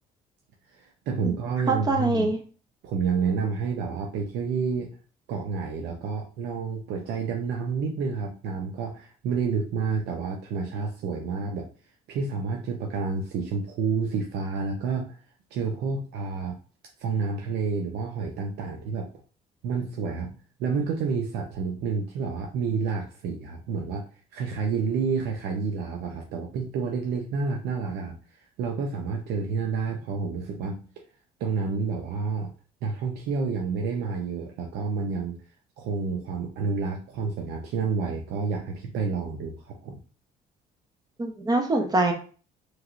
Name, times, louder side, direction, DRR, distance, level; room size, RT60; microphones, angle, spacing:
voice 1, 0.8-2.4 2.8-4.9 5.3-11.6 12.1-15.2 15.5-16.6 17.0-19.1 19.6-24.0 24.3-28.1 28.6-30.8 31.4-32.5 32.8-35.4 35.8-40.0, right 5 dB, 80° right, 1 dB, 0.6 m, -29 dB
voice 2, 1.7-2.4 41.2-42.1, right 2 dB, 25° right, 4 dB, 0.8 m, -23 dB
3.1 x 2.8 x 2.5 m, 0.38 s
cardioid pair, 110°, 17 cm